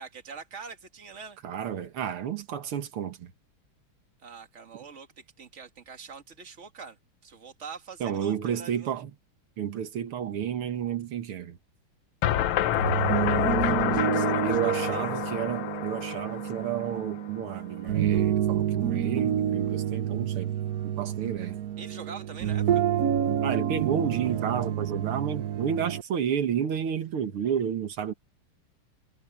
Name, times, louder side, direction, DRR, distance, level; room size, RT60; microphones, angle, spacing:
voice 1, 0.0-1.4 4.2-7.0 7.2-8.9 12.9-15.1 21.8-22.8, right 5 dB, 35° right, 2.2 m, -44 dB
voice 2, 1.4-3.3 8.0-9.1 9.6-11.6 14.4-20.5 20.8-21.6 23.4-28.1, right 8 dB, 90° right, 2.3 m, -31 dB
sound 1, 12.2-17.2, left 12 dB, 75° left, 1.6 m, -28 dB
sound 2, 12.6-26.0, right 10 dB, 60° right, 1.1 m, -28 dB
omnidirectional pair, 2.3 m